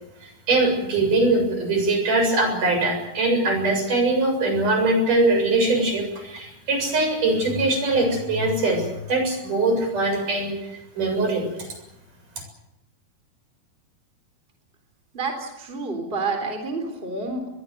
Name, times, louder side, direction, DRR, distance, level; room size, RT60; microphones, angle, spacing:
voice 1, 0.5-10.6 11.0-11.5, right 2 dB, 60° right, 4 dB, 8.7 m, -22 dB
voice 2, 15.1-17.5, right 3 dB, 15° right, 5 dB, 3.7 m, -29 dB
22.5 x 22.0 x 8.1 m, 0.87 s
omnidirectional pair, 4.1 m